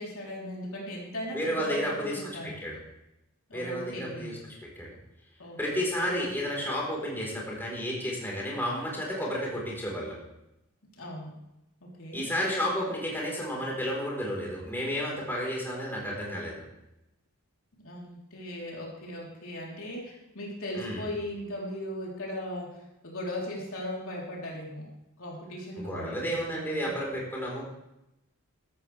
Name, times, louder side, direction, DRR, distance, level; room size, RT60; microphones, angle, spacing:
voice 1, 0.0-2.6 3.5-4.4 5.4-5.8 11.0-11.3 11.8-12.2 17.8-22.8 23.0-24.8 25.2-26.9, left 1 dB, 70° left, -3 dB, 3.7 m, -38 dB
voice 2, 1.3-2.8 3.5-4.9 5.6-10.2 12.1-16.6 20.7-21.1 25.8-27.6, equal, 10° left, -3 dB, 4.2 m, -32 dB
14.0 x 13.0 x 3.4 m, 0.88 s
head